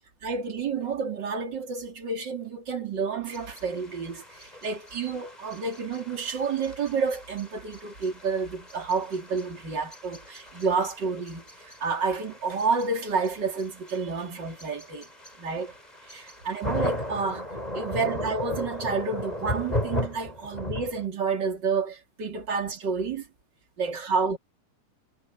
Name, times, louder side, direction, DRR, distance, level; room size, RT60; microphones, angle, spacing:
voice 1, 0.2-15.1 15.4-15.7 16.1-17.5 17.7-23.3 23.8-24.4, right 5 dB, 30° right, 3.1 m, -30 dB
sound 1, 3.3-21.1, left 1 dB, 10° left, 6.2 m, -36 dB
omnidirectional pair, 4.5 m